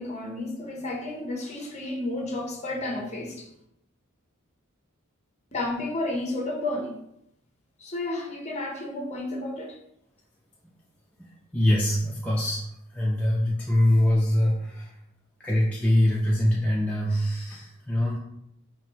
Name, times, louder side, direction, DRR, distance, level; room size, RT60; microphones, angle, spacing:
voice 1, 0.0-3.5 5.5-7.0 7.8-9.8, left 2 dB, 30° left, 0 dB, 0.8 m, -32 dB
voice 2, 11.2-15.0 15.4-18.2, left 1 dB, 5° left, -4 dB, 0.4 m, -24 dB
5.0 x 2.7 x 2.9 m, 0.79 s
head